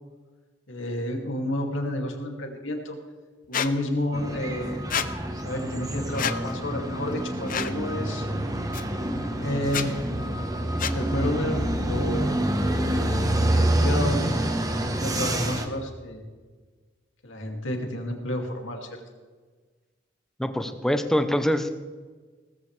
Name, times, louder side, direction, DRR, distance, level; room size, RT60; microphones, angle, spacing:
voice 1, 0.7-3.0 3.5-4.9 5.4-8.3 9.3-10.1 10.8-12.4 13.3-14.3 15.0-16.2 17.2-18.9, left 1 dB, 90° left, 2 dB, 2.4 m, -30 dB
Squeak, 3.5-3.7 4.9-5.1 6.1-6.4 7.5-7.7 8.7-8.8 9.7-9.9 10.8-11.0, left 8 dB, 45° left, 0.7 m, -28 dB
sound 1, 4.1-15.7, right 1 dB, 20° right, 1.1 m, -27 dB
voice 2, 20.4-21.9, equal, ahead, 7 dB, 0.8 m, -25 dB
18.5 x 14.5 x 3.3 m, 1.4 s
head